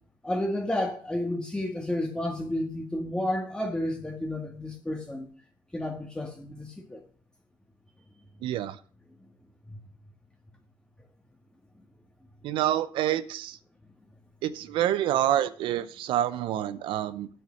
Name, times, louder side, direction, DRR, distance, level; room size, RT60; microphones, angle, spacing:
voice 1, 0.2-5.3 5.7-7.0, left 1 dB, 10° left, 1.8 m, -31 dB
voice 2, 8.4-8.8 12.4-13.6 14.4-17.3, right 12 dB, 85° right, 0.7 m, -27 dB
9.2 x 8.1 x 6.4 m
cardioid pair, 85°, 8 cm